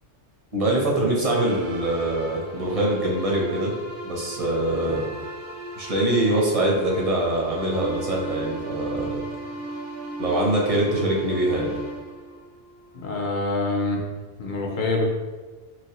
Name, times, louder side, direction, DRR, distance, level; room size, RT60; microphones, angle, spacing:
voice 1, 0.5-3.7 4.0-5.0 5.8-9.2 10.2-11.8, right 1 dB, 40° right, -2 dB, 0.6 m, -23 dB
sound 1, 1.3-13.1, right 2 dB, 65° right, 0.9 m, -36 dB
voice 2, 13.0-14.0 14.4-15.0, left 2 dB, 55° left, 0 dB, 0.5 m, -25 dB
3.3 x 3.0 x 2.9 m, 1.3 s
omnidirectional pair, 1.3 m